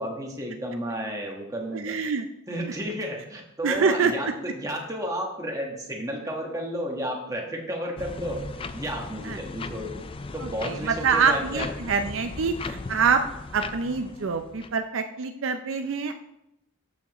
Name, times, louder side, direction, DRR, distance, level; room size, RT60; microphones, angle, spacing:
voice 1, 0.0-2.0 2.5-11.9, equal, 15° right, 0 dB, 1.4 m, -32 dB
voice 2, 1.7-2.3 3.6-4.1 9.2-9.4 10.4-13.2 13.5-16.1, right 5 dB, 65° right, 7 dB, 0.5 m, -25 dB
sound 1, 8.0-14.8, left 3 dB, 25° left, 0.3 m, -37 dB
12.5 x 7.2 x 3.0 m, 0.86 s
head